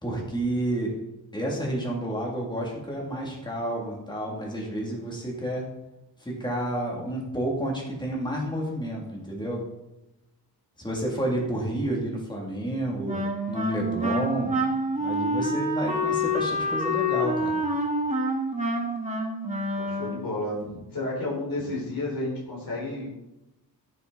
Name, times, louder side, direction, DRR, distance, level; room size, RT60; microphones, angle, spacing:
voice 1, 0.0-0.9 1.3-5.7 6.2-9.6 10.8-13.2 13.5-14.6 15.0-17.6, right 1 dB, 10° left, -2 dB, 2.6 m, -30 dB
Wind instrument woodwind instrument, 13.0-20.4, equal, 15° right, 1.7 m, -27 dB
voice 2, 19.7-23.1, left 2 dB, 55° left, -5 dB, 4.4 m, -31 dB
15.5 x 6.6 x 4.0 m, 0.93 s
wide cardioid pair, 160°, 42 cm